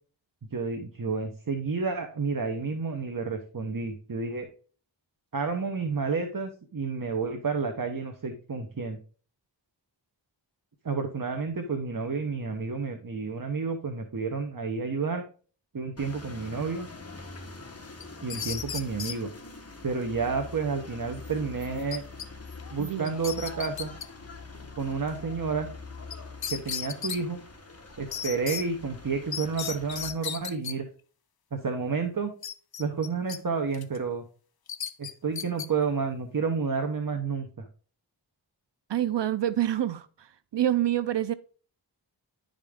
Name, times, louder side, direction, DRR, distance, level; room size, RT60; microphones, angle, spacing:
voice 1, 0.5-4.5 5.3-9.0 10.8-15.2 15.7-16.9 18.2-19.3 19.8-22.0 22.7-23.9 24.8-25.7 26.5-27.4 28.0-30.9 31.5-32.3 32.8-34.2 35.0-37.6, right 4 dB, 50° right, 1.0 m, -30 dB
sound 1, 16.0-30.1, left 3 dB, 35° left, 1.3 m, -44 dB
sound 2, 18.0-19.2 21.9-22.3 22.6-22.7 23.1-24.1 26.1-26.2 26.4-27.2 28.1-28.6 29.3-30.7 32.4-33.4 33.7-34.0 34.7-35.7, left 8 dB, 55° left, 0.6 m, -35 dB
voice 2, 22.8-23.1 38.9-41.3, right 12 dB, 70° right, 0.5 m, -27 dB
10.5 x 5.1 x 3.6 m
wide cardioid pair, 70°, 44 cm